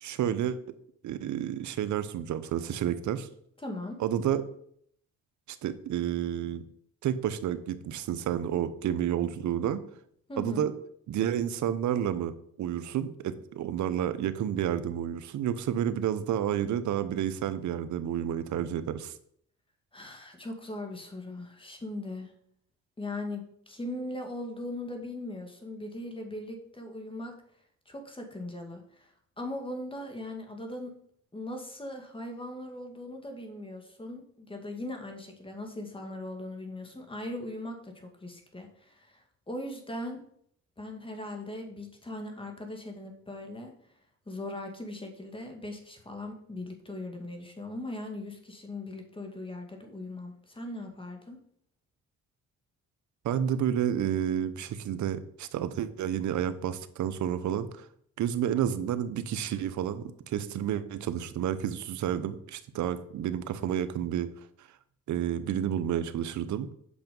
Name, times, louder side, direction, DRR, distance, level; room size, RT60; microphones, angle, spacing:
voice 1, 0.0-0.8 1.0-3.3 4.0-4.5 5.5-6.6 7.0-9.8 10.4-10.7 11.1-19.1 53.2-57.9 58.2-64.3 65.1-66.7, right 10 dB, 70° right, 12 dB, 0.9 m, -30 dB
voice 2, 3.6-4.0 10.3-10.7 19.9-22.3 23.0-27.3 27.9-29.1 29.4-30.9 31.3-40.2 40.8-43.7 44.3-51.4, left 1 dB, 15° left, 3 dB, 2.2 m, -39 dB
8.6 x 5.8 x 5.3 m, 0.67 s
cardioid pair, 90°, 30 cm